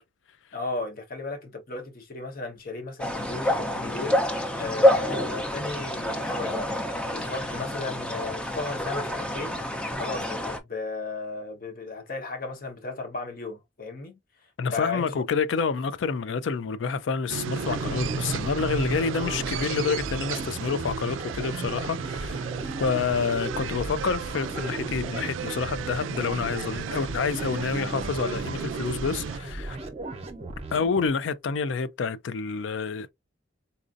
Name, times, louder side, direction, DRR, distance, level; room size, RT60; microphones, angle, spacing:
voice 1, 0.5-9.6 10.0-15.2, left 3 dB, 50° left, 1.1 m, -35 dB
sound 1, 3.0-10.6, left 1 dB, 5° left, 0.5 m, -27 dB
voice 2, 14.6-22.5 22.8-29.8 30.7-33.1, left 5 dB, 70° left, 0.4 m, -28 dB
sound 2, 17.3-29.4, right 6 dB, 85° right, 0.3 m, -34 dB
sound 3, 17.6-31.1, right 2 dB, 30° right, 0.7 m, -37 dB
4.1 x 2.5 x 2.5 m
head